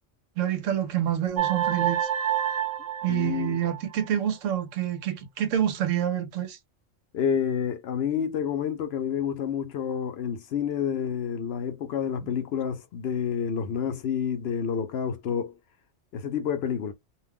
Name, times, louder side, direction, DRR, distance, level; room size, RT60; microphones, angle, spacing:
voice 1, 0.4-2.1 3.0-6.6, right 10 dB, 85° right, 1.1 m, -27 dB
sound 1, 1.4-4.0, right 10 dB, 65° right, 0.9 m, -28 dB
voice 2, 3.1-3.6 7.1-15.6 16.1-16.9, left 7 dB, 65° left, 0.7 m, -29 dB
2.6 x 2.2 x 3.4 m
omnidirectional pair, 1.3 m